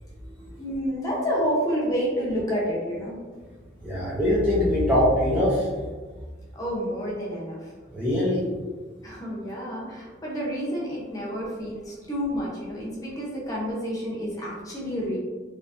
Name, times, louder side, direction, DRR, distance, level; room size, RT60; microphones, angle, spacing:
voice 1, 0.6-3.2 6.5-7.7 9.0-15.2, equal, 20° left, -5 dB, 0.9 m, -29 dB
voice 2, 3.8-5.7 7.9-8.4, left 1 dB, 10° right, -9 dB, 0.6 m, -22 dB
3.5 x 3.2 x 2.7 m, 1.4 s
head